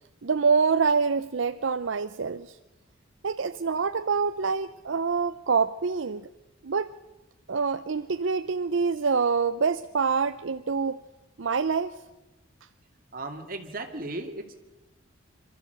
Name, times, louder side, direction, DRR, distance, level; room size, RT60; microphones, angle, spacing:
voice 1, 0.2-2.6 3.2-6.3 6.6-6.9 7.5-11.0 11.4-12.0, right 5 dB, 70° right, 11 dB, 0.6 m, -26 dB
voice 2, 13.1-14.6, right 2 dB, 45° right, 5 dB, 2.4 m, -36 dB
26.5 x 13.5 x 7.9 m, 1.1 s
head